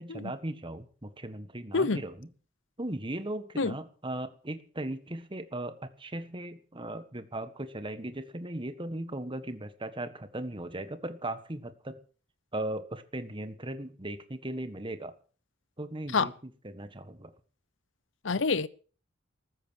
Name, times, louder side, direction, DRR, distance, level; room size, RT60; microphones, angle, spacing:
voice 1, 0.0-2.3 2.8-12.0 12.5-15.1 15.8-16.3 16.6-17.3, right 1 dB, 25° right, 1.6 m, -38 dB
voice 2, 18.2-18.7, left 4 dB, 70° left, 0.8 m, -26 dB
14.5 x 13.0 x 6.5 m
head